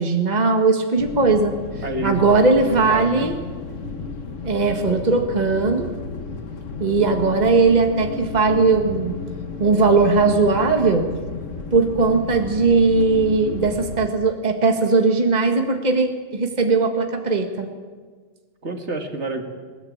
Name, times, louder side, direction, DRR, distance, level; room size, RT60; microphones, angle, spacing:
voice 1, 0.0-1.5 2.0-3.3 4.4-5.9 6.8-9.2 9.6-11.1 11.7-17.7, right 3 dB, 35° right, 4 dB, 1.8 m, -19 dB
sound 1, 1.0-14.1, left 4 dB, 80° left, 1.8 m, -33 dB
voice 2, 1.8-2.2 2.7-3.3 18.6-19.4, right 2 dB, 65° right, 4 dB, 2.4 m, -28 dB
21.0 x 19.5 x 8.7 m, 1.5 s
omnidirectional pair, 1.3 m